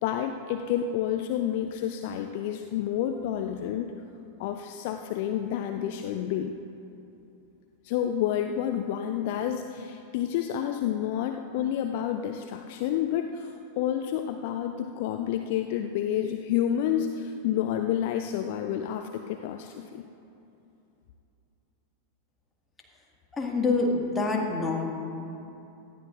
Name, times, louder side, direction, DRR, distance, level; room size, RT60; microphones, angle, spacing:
voice 1, 0.0-3.9 4.4-6.5 7.8-20.0, left 10 dB, 50° left, 7 dB, 0.5 m, -29 dB
voice 2, 23.4-24.8, left 3 dB, 15° left, 0 dB, 2.0 m, -26 dB
18.5 x 13.5 x 2.6 m, 2.8 s
figure-of-eight pair, 90°, 0 cm